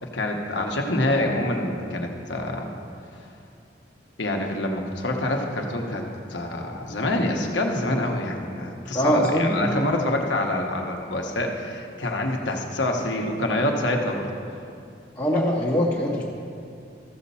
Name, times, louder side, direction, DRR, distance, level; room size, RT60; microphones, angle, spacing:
voice 1, 0.0-2.7 4.2-14.3, left 1 dB, 75° left, 2 dB, 1.1 m, -26 dB
voice 2, 8.9-9.9 15.2-16.2, equal, 20° left, -5 dB, 0.9 m, -22 dB
14.0 x 6.9 x 4.2 m, 2.5 s
head